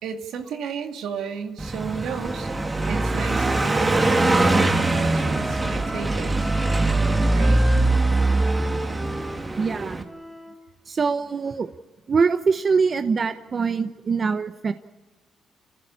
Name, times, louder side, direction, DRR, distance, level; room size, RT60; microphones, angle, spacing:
voice 1, 0.0-2.5 2.9-6.5 7.3-7.6, right 7 dB, 80° right, 4 dB, 2.4 m, -33 dB
Car passing by, 1.6-10.0, right 2 dB, 25° right, 2.0 m, -22 dB
Wind instrument woodwind instrument, 2.2-10.6, equal, 5° right, 4.0 m, -36 dB
voice 2, 9.6-10.1 10.9-11.7 12.1-14.7, right 5 dB, 40° right, 9 dB, 0.9 m, -23 dB
29.5 x 15.0 x 8.6 m, 1.2 s
cardioid pair, 90°, 0 cm